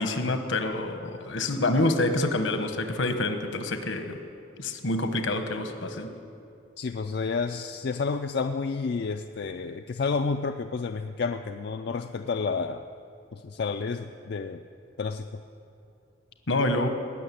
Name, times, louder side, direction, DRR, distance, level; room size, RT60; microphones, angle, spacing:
voice 1, 0.0-4.2 4.6-6.1 16.5-16.9, left 2 dB, 75° left, 7 dB, 1.2 m, -27 dB
voice 2, 6.8-12.8 13.3-14.6 15.0-15.4, left 4 dB, 55° left, 6 dB, 0.4 m, -30 dB
18.0 x 6.4 x 9.4 m, 2.6 s
head